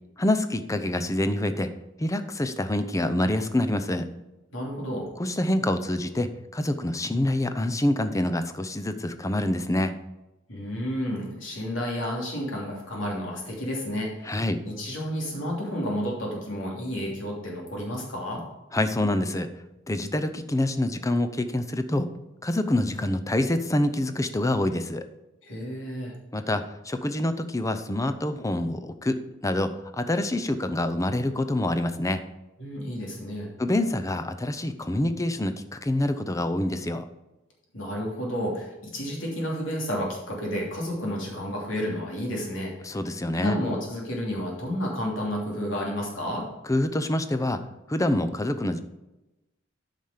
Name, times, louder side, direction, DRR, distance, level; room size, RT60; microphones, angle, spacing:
voice 1, 0.2-1.7 2.0-4.1 5.2-9.9 14.3-14.6 18.7-19.5 19.9-22.1 22.4-25.0 26.3-32.2 33.6-37.1 42.8-43.6 46.7-47.6 47.9-48.8, left 1 dB, 15° left, 9 dB, 0.6 m, -26 dB
voice 2, 4.5-5.1 10.5-14.4 14.6-18.4 25.4-26.1 32.6-33.5 37.7-43.0 43.3-46.5, equal, 80° left, -2 dB, 3.0 m, -31 dB
9.1 x 5.7 x 5.0 m, 0.99 s
head